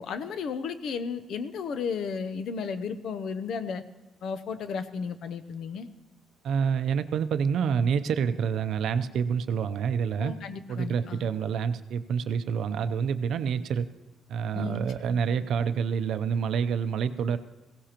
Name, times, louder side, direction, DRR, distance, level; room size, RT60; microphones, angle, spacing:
voice 1, 0.0-3.8 4.2-5.9 10.2-11.3 14.5-14.8 15.1-15.2, left 5 dB, 70° left, 12 dB, 0.7 m, -34 dB
voice 2, 6.4-10.3 10.7-13.9 14.3-17.4, right 7 dB, 70° right, 11 dB, 0.6 m, -27 dB
16.5 x 16.5 x 2.9 m, 1.1 s
cardioid pair, 90°, 0 cm